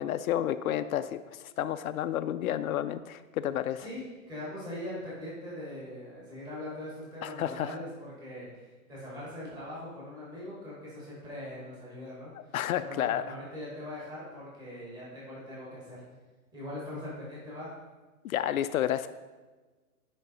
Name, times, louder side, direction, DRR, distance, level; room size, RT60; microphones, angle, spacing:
voice 1, 0.0-3.9 7.2-7.7 12.5-13.2 18.2-19.1, left 11 dB, 70° left, 10 dB, 0.5 m, -30 dB
voice 2, 3.8-16.0 16.5-17.7, left 1 dB, 10° right, -7 dB, 1.7 m, -41 dB
10.0 x 5.3 x 4.1 m, 1.3 s
hypercardioid pair, 165°, 43 cm